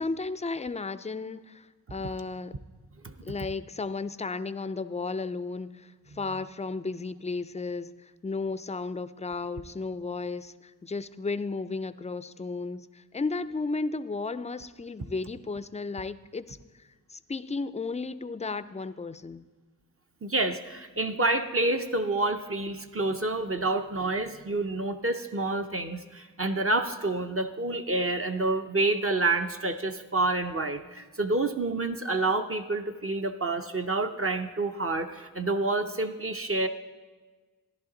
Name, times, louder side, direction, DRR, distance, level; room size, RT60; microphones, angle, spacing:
voice 1, 0.0-2.5 3.2-19.5, left 3 dB, 20° left, 15 dB, 0.3 m, -34 dB
voice 2, 20.2-36.7, right 2 dB, 40° right, 6 dB, 0.6 m, -28 dB
14.0 x 11.0 x 3.8 m, 1.3 s
wide cardioid pair, 75°, 36 cm